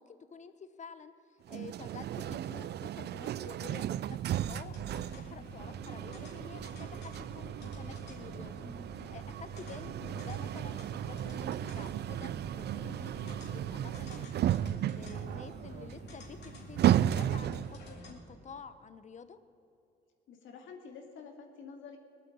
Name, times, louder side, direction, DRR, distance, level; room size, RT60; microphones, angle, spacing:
voice 1, 0.0-8.7 9.1-14.3 14.9-19.4, left 6 dB, 35° left, 12 dB, 0.8 m, -50 dB
sound 1, 1.5-17.9, right 11 dB, 55° right, 0.4 m, -34 dB
sound 2, 4.6-18.1, left 1 dB, 55° left, 3.3 m, -49 dB
voice 2, 20.3-22.0, left 5 dB, 80° left, 3 dB, 2.1 m, -48 dB
19.0 x 8.7 x 8.5 m, 2.8 s
cardioid pair, 90°, 20 cm